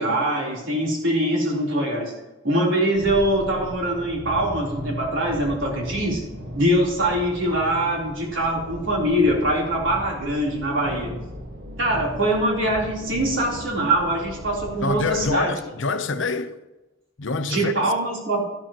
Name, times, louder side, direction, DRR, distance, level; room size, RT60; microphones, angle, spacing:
voice 1, 0.0-2.1 2.4-6.2 6.5-11.2 11.8-15.5 17.4-18.4, right 1 dB, 85° right, 3.5 m, -23 dB
sound 1, 2.9-15.3, equal, 65° right, 1.5 m, -37 dB
voice 2, 14.8-16.5 17.2-17.9, left 4 dB, 75° left, 0.8 m, -26 dB
12.5 x 11.5 x 3.0 m
head